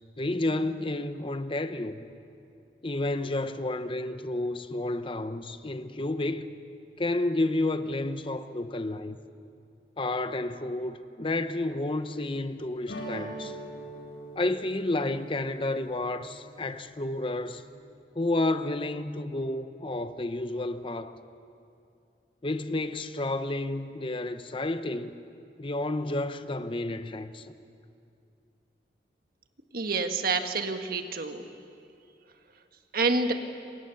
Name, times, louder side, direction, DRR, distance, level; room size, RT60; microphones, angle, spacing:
voice 1, 0.2-2.0 2.8-6.6 7.0-9.2 10.0-13.6 14.4-17.6 18.2-21.2 22.4-25.1 25.6-27.5, left 2 dB, 30° left, 0.8 m, -31 dB
sound 1, 12.9-17.7, right 1 dB, 65° left, 4.9 m, -43 dB
voice 2, 29.7-31.4 32.9-33.3, right 3 dB, 55° right, 1.6 m, -27 dB
27.5 x 24.0 x 7.0 m
head